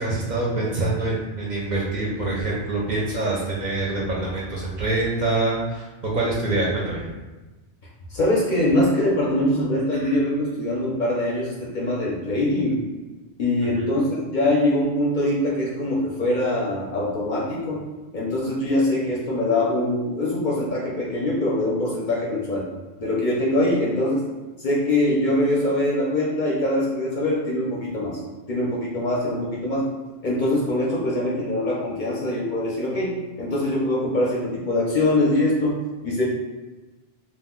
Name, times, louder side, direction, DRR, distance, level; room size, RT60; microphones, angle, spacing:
voice 1, 0.0-7.0 10.0-10.1 13.7-13.8, right 2 dB, 50° right, -5 dB, 0.6 m, -25 dB
voice 2, 8.1-12.8 13.4-17.9 18.1-22.7 23.0-24.3 24.6-28.2 28.5-29.9 30.2-36.2, left 1 dB, 55° left, -4 dB, 0.6 m, -23 dB
2.4 x 2.1 x 3.6 m, 1.2 s
omnidirectional pair, 1.1 m